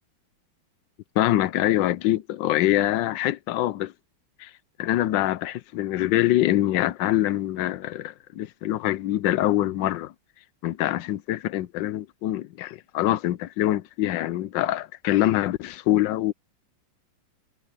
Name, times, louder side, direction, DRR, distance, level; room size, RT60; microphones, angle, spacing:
voice 1, 1.2-3.9 4.8-10.1 10.6-16.3, left 14 dB, 75° left, 1.3 m, -24 dB
omnidirectional pair, 2.1 m